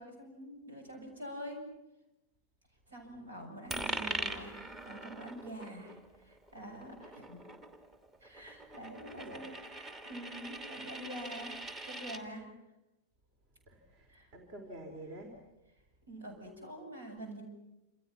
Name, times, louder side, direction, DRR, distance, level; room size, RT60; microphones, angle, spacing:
voice 1, 0.0-1.7 2.9-7.5 8.2-12.5 14.1-14.3 16.1-17.4, equal, 70° right, 4 dB, 7.5 m, -46 dB
Coin (dropping), 3.7-12.2, right 2 dB, 25° right, 2.8 m, -42 dB
voice 2, 9.1-9.5 13.7-15.3, right 1 dB, 40° right, 5 dB, 4.3 m, -48 dB
28.5 x 28.0 x 6.1 m, 0.97 s
figure-of-eight pair, 90°, 0 cm